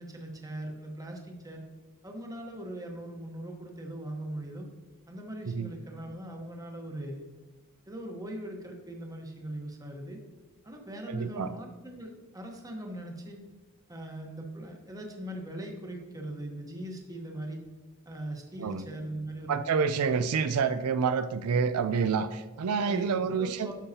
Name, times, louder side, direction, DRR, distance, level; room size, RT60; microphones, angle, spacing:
voice 1, 0.0-1.6 2.0-4.7 5.1-7.2 7.9-10.2 10.6-13.4 13.9-17.6 18.0-19.6 22.9-23.7, right 1 dB, 15° right, 2 dB, 1.1 m, -40 dB
voice 2, 11.1-11.5 18.6-18.9 19.5-23.7, right 5 dB, 85° right, 11 dB, 0.4 m, -28 dB
12.0 x 5.5 x 2.8 m, 1.3 s
head